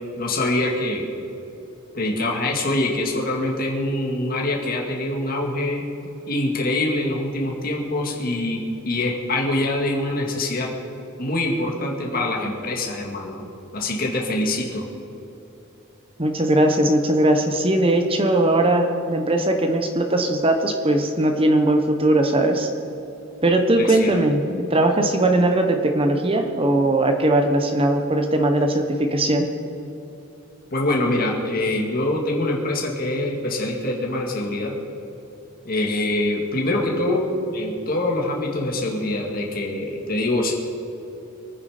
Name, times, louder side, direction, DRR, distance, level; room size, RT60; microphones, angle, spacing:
voice 1, 0.2-1.1 1.9-5.8 6.3-10.7 11.2-13.5 13.7-14.9 23.8-24.1 30.7-34.7 35.6-37.3 37.5-40.5, left 1 dB, 45° left, -1 dB, 2.1 m, -24 dB
voice 2, 16.2-22.7 23.4-29.5 37.1-37.2, right 1 dB, 25° right, 5 dB, 1.0 m, -19 dB
23.5 x 9.6 x 5.0 m, 2.9 s
head